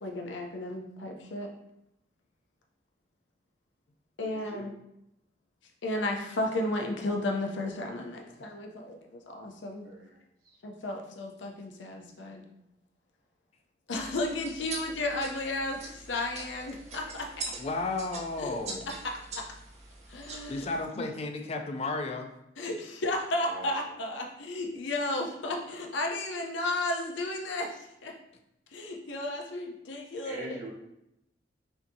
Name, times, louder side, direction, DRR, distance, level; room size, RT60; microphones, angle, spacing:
voice 1, 0.0-1.5 4.2-4.7 5.8-9.9 10.6-12.4 13.9-17.5 18.4-18.6 18.9-19.4 20.1-20.7 20.9-21.1 22.6-28.1 28.7-30.6, left 2 dB, 80° left, 2 dB, 0.7 m, -33 dB
voice 2, 9.8-10.2 23.4-23.8 30.2-30.7, right 2 dB, 50° right, -5 dB, 1.3 m, -41 dB
sound 1, 13.9-20.8, right 3 dB, 35° right, 0.6 m, -43 dB
voice 3, 17.6-18.9 20.5-22.3, left 3 dB, 35° left, 4 dB, 0.4 m, -33 dB
5.7 x 2.8 x 2.7 m, 0.83 s
head